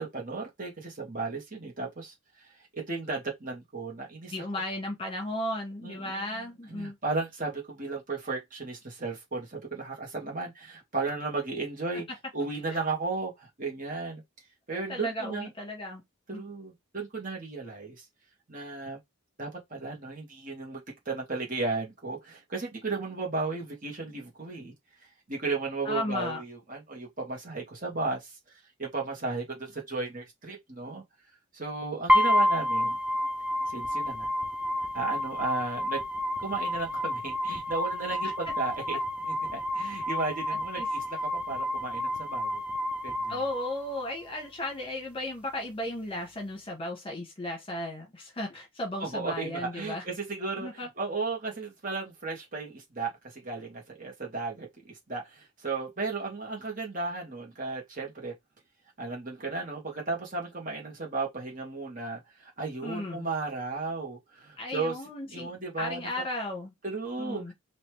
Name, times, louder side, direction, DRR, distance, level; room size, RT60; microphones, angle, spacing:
voice 1, 0.0-4.5 5.8-12.1 12.3-14.2 14.7-15.5 16.3-18.1 18.5-19.0 19.4-24.7 25.3-31.0 31.5-33.0 33.7-34.3 34.9-36.0 36.4-39.0 39.3-42.6 43.0-43.4 49.0-58.3 59.0-65.0 65.3-66.2 66.8-67.5, right 3 dB, 40° right, 1.9 m, -35 dB
voice 2, 4.3-6.9 12.7-12.8 14.7-16.0 16.3-16.4 25.8-26.4 39.8-40.0 40.8-40.9 43.3-50.0 50.6-50.9 62.8-63.3 64.6-65.5 65.8-66.7 67.2-67.5, left 1 dB, 25° left, 1.6 m, -35 dB
sound 1, 32.1-44.1, left 1 dB, 5° right, 0.8 m, -29 dB
4.1 x 3.1 x 3.3 m
head